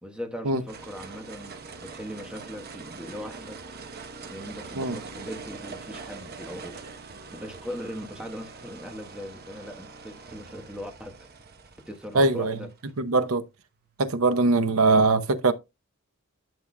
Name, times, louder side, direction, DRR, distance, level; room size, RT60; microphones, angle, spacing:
voice 1, 0.0-3.6 4.3-6.7 7.3-11.3 11.9-12.7, equal, 5° right, 1.2 m, -39 dB
sound 1, 0.7-14.0, right 4 dB, 45° right, 1.0 m, -43 dB
voice 2, 12.1-12.6 13.0-13.4 14.0-15.5, right 3 dB, 75° right, 0.8 m, -21 dB
12.0 x 6.0 x 2.2 m
head